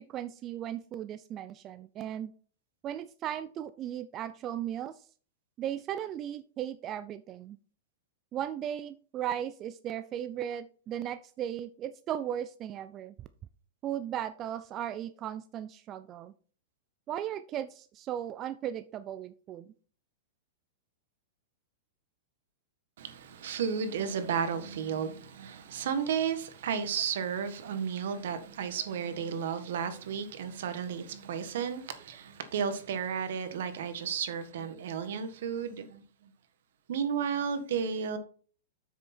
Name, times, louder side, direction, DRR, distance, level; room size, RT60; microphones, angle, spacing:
voice 1, 0.0-2.3 2.8-4.9 5.6-7.6 8.3-13.1 13.8-16.3 17.1-19.7, right 10 dB, 30° right, 0.4 m, -36 dB
voice 2, 23.0-36.0 36.9-38.2, right 7 dB, 75° right, 1.5 m, -33 dB
8.1 x 6.4 x 4.4 m
hypercardioid pair, 140°, 0 cm